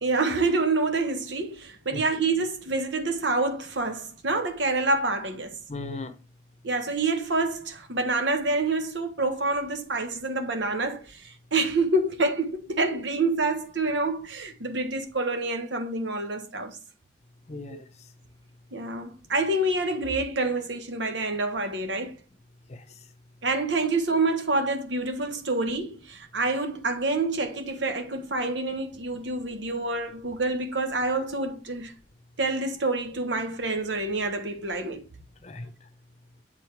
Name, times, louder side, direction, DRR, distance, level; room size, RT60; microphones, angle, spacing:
voice 1, 0.0-5.6 6.6-16.8 17.7-17.8 18.7-22.1 23.4-31.9 32.4-35.0, right 2 dB, 70° right, 1.5 m, -27 dB
voice 2, 5.7-6.2 17.5-18.1 22.7-23.1 35.4-35.9, left 3 dB, 35° left, 0.8 m, -38 dB
8.2 x 3.9 x 4.7 m
head